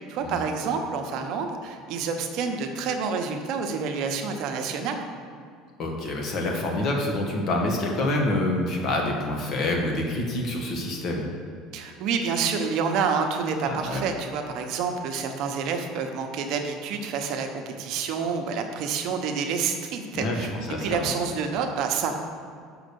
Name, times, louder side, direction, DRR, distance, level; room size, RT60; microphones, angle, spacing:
voice 1, 0.1-5.0 11.7-20.5 20.8-22.2, right 5 dB, 60° right, 4 dB, 0.9 m, -28 dB
voice 2, 5.8-11.3 13.7-14.0 20.1-21.1, left 1 dB, 50° left, 0 dB, 1.7 m, -27 dB
6.4 x 4.9 x 6.8 m, 2.2 s
cardioid pair, 125°, 0 cm